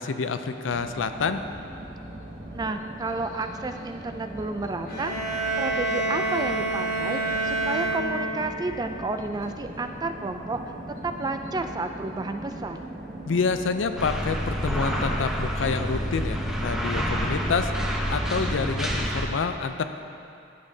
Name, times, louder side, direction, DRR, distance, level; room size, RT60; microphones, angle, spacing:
voice 1, 0.0-1.4 13.3-17.7 18.1-19.8, left 5 dB, 85° left, 9 dB, 0.4 m, -28 dB
sound 1, 0.7-19.1, right 1 dB, 45° right, 1.0 m, -40 dB
voice 2, 2.5-10.7 11.0-12.8, right 3 dB, 20° right, 7 dB, 0.3 m, -31 dB
sound 2, 4.8-8.7, right 2 dB, 55° left, 1.4 m, -27 dB
sound 3, 14.0-19.3, equal, 5° right, 0.7 m, -28 dB
11.5 x 8.4 x 2.7 m, 2.5 s
head